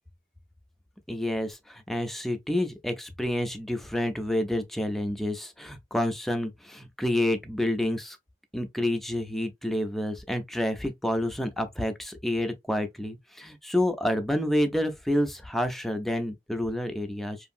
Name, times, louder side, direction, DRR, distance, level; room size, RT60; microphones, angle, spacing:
voice 1, 1.1-8.2 8.5-17.4, left 1 dB, ahead, 0.3 m, -29 dB
2.7 x 2.6 x 2.4 m
head